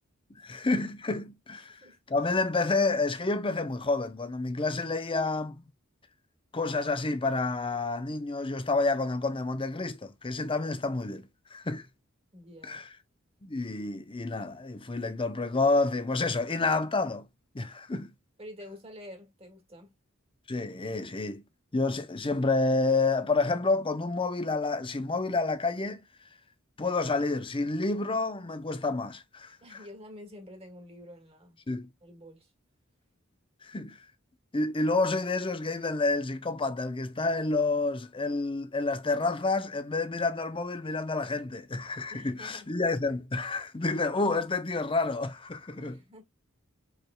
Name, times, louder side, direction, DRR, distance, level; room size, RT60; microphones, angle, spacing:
voice 1, 0.3-1.8 2.1-5.7 6.5-11.9 12.6-12.9 13.4-17.3 17.5-18.1 20.5-21.4 21.7-26.0 26.8-29.6 31.7-31.9 33.6-34.0 34.5-46.0, left 3 dB, 25° left, 0.8 m, -29 dB
voice 2, 1.6-2.0 12.3-12.8 18.4-19.9 29.6-31.6 32.0-32.5 42.1-42.7 45.8-46.2, left 1 dB, 30° right, 1.9 m, -48 dB
4.9 x 4.8 x 2.3 m
head